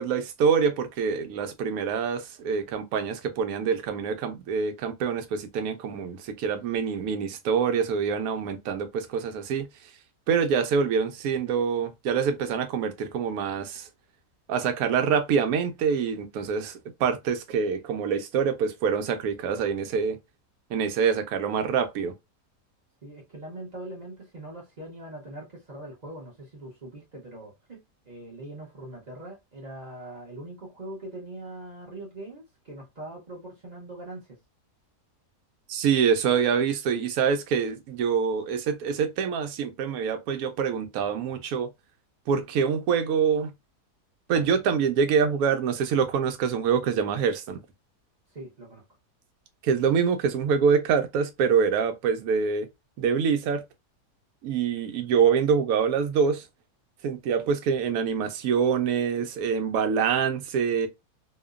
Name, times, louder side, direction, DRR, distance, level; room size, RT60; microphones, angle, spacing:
voice 1, 0.0-9.7 10.3-13.9 14.5-20.2 20.7-22.1 35.7-41.7 42.3-43.5 44.3-47.6 49.6-52.7 53.0-53.6 54.4-56.4 57.0-60.9, right 6 dB, 70° right, 1.0 m, -25 dB
voice 2, 23.0-27.8 28.1-34.4 48.3-48.8, right 1 dB, 35° right, 0.7 m, -42 dB
2.9 x 2.1 x 2.3 m
omnidirectional pair, 1.7 m